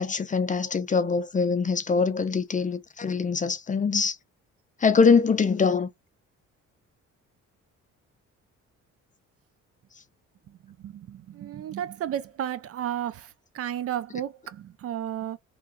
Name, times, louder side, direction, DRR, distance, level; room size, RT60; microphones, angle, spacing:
voice 1, 0.0-4.2 4.8-5.9, left 5 dB, 25° left, 0.5 m, -23 dB
voice 2, 10.8-13.3 13.5-15.4, right 10 dB, 50° right, 0.4 m, -33 dB
3.1 x 2.3 x 2.3 m
cardioid pair, 90°, 30 cm